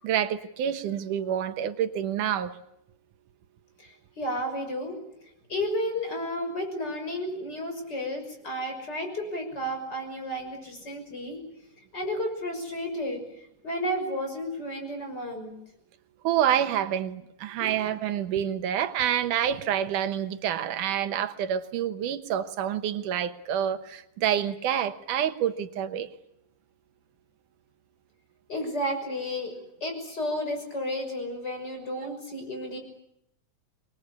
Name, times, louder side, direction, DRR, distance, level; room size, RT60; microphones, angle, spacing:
voice 1, 0.0-2.6 16.2-26.1, right 10 dB, 90° right, 2.7 m, -28 dB
voice 2, 4.2-5.0 5.5-11.4 11.9-13.2 13.6-15.6 17.6-17.7 28.5-29.5 29.8-32.8, equal, 30° left, 6.7 m, -32 dB
27.0 x 21.5 x 8.5 m
omnidirectional pair, 3.5 m